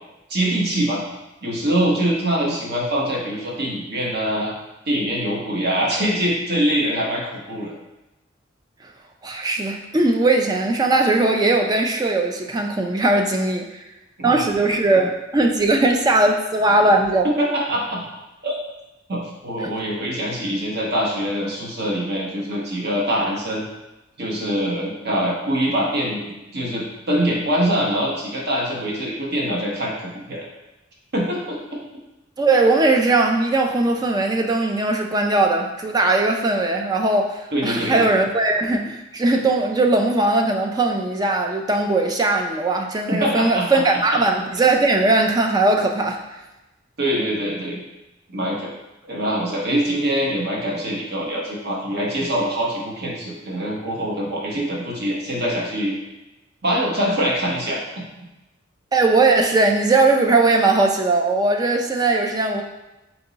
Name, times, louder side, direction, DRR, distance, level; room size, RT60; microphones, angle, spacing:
voice 1, 0.3-1.0 1.4-4.5 4.9-7.8 14.2-14.4 17.2-18.0 18.4-18.5 19.1-23.7 24.2-30.5 31.1-31.6 37.5-38.0 43.1-43.8 47.0-47.8 48.3-48.7 49.0-55.9 56.6-57.8, equal, 55° right, -3 dB, 0.9 m, -24 dB
voice 2, 9.2-13.8 14.2-17.3 19.6-19.7 32.4-46.2 58.9-62.6, right 2 dB, 20° right, 3 dB, 0.3 m, -19 dB
3.5 x 3.0 x 3.9 m, 1.0 s
head